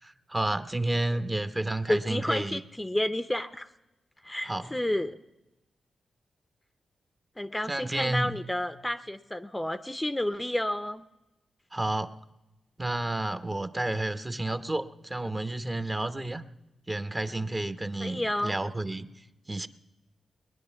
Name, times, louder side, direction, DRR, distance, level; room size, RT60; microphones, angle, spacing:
voice 1, 0.0-2.6 4.5-4.7 7.7-8.4 11.7-12.1 12.8-16.4 16.9-19.1 19.5-19.7, right 2 dB, 20° right, 11 dB, 0.8 m, -31 dB
voice 2, 1.9-3.7 4.2-5.2 7.4-11.0 18.0-18.6, left 1 dB, 10° left, 11 dB, 0.6 m, -30 dB
20.0 x 10.0 x 7.0 m, 1.0 s
cardioid pair, 70°, 0 cm